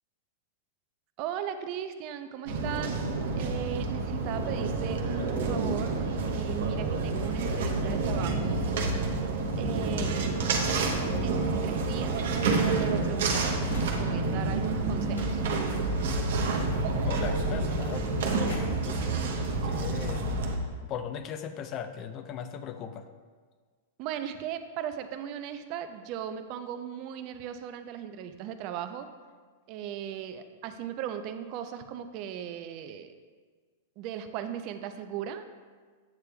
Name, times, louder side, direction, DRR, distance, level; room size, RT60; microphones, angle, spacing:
voice 1, 1.2-3.0 3.4-8.6 9.6-10.5 11.2-12.3 12.6-15.4 24.0-29.1 29.7-33.1 34.0-35.4, right 9 dB, 45° right, 9 dB, 0.4 m, -37 dB
sound 1, 2.5-20.6, right 3 dB, 70° right, 0.8 m, -28 dB
sound 2, 12.8-14.1 15.2-18.8 19.6-19.7 20.0-20.3, left 2 dB, 90° left, 1.2 m, -47 dB
voice 2, 17.0-19.1 19.6-20.3 20.9-23.1, left 8 dB, 40° left, 9 dB, 0.5 m, -38 dB
8.1 x 6.7 x 2.2 m, 1.5 s
hypercardioid pair, 115°, 0 cm